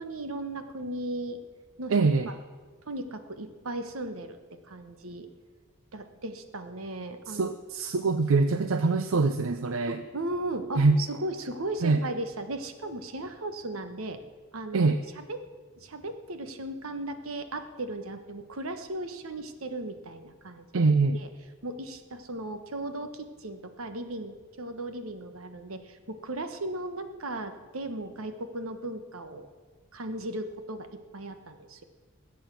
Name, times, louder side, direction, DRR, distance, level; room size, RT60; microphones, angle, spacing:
voice 1, 0.0-1.4 1.8-2.4 2.9-4.4 4.7-5.3 5.9-7.5 9.9-14.2 14.5-14.9 15.2-15.4 15.8-21.3 21.6-29.5 29.9-30.9 31.1-31.8, right 2 dB, 90° right, 8 dB, 1.3 m, -36 dB
voice 2, 1.9-2.3 7.3-10.0 10.8-11.0 11.8-12.0 14.7-15.0 20.7-21.2, right 3 dB, 75° right, 10 dB, 0.6 m, -24 dB
21.0 x 8.4 x 6.2 m, 1.5 s
head